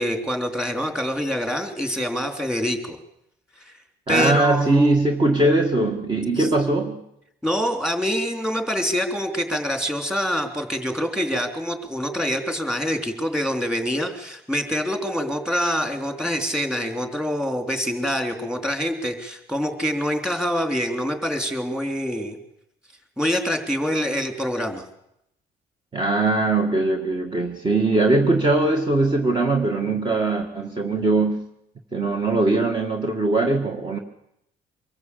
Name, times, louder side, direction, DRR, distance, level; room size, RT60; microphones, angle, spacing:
voice 1, 0.0-3.0 3.6-3.7 4.1-4.9 6.4-6.5 7.4-22.4 23.2-24.8, equal, 5° right, 5 dB, 3.5 m, -25 dB
voice 2, 4.1-7.0 25.9-31.4 31.9-34.0, right 2 dB, 25° right, 3 dB, 1.9 m, -21 dB
24.5 x 14.0 x 8.5 m, 0.80 s
cardioid pair, 110°, 17 cm